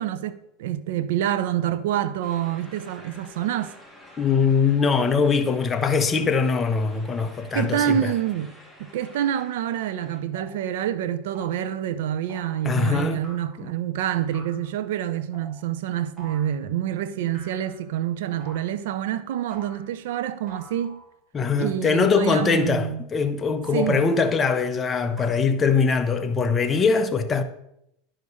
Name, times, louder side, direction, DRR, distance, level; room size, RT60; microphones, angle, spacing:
voice 1, 0.0-3.7 7.5-8.5 8.8-21.0 21.6-23.1 23.7-24.1, right 11 dB, 75° right, 0.6 m, -27 dB
sound 1, 2.2-10.2, left 1 dB, 5° right, 2.1 m, -49 dB
voice 2, 4.2-8.1 12.6-13.2 13.6-13.7 21.3-27.4, left 5 dB, 20° left, 0.9 m, -22 dB
sound 2, 10.3-10.6 11.3-11.7 12.3-12.7 13.2-13.7 14.3-14.7 15.3-15.6 16.2-16.7 17.3-18.0 18.4-18.9 19.5-20.0 20.5-21.2 22.1-22.8 23.8-24.5 25.2-25.3, right 3 dB, 20° right, 2.8 m, -46 dB
11.0 x 5.0 x 5.4 m
supercardioid pair, 125°, 0 cm